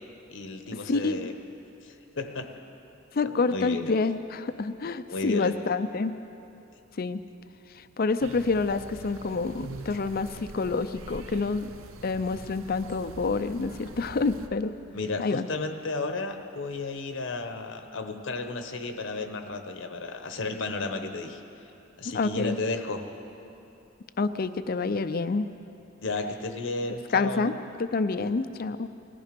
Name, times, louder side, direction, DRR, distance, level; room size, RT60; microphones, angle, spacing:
voice 1, 0.3-1.3 1.8-2.5 3.2-3.9 5.1-5.6 14.9-21.4 22.0-23.0 26.0-27.5, left 3 dB, 60° left, 7 dB, 0.9 m, -33 dB
voice 2, 0.9-1.3 3.1-6.2 7.0-7.2 7.7-11.7 12.0-14.7 15.2-15.5 22.1-22.6 24.2-25.5 27.1-28.9, left 4 dB, 45° left, 12 dB, 0.5 m, -28 dB
sound 1, 8.2-14.5, right 3 dB, 85° right, 0.8 m, -44 dB
19.0 x 14.0 x 5.2 m, 2.8 s
head